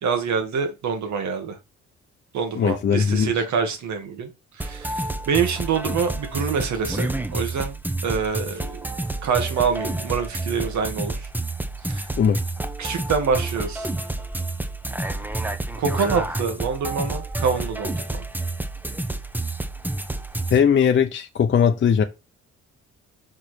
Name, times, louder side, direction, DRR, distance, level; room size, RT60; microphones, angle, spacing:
voice 1, 0.0-1.6 2.3-4.3 4.6-7.8 8.0-8.8 9.2-11.2 11.9-12.1 12.8-13.9 15.8-18.2, right 6 dB, 70° right, 2.0 m, -26 dB
voice 2, 2.5-3.4 12.2-12.4 20.5-22.0, left 7 dB, 40° left, 0.7 m, -19 dB
sound 1, 4.6-20.6, right 2 dB, 5° right, 1.0 m, -29 dB
6.0 x 4.7 x 4.4 m
cardioid pair, 90°, 30 cm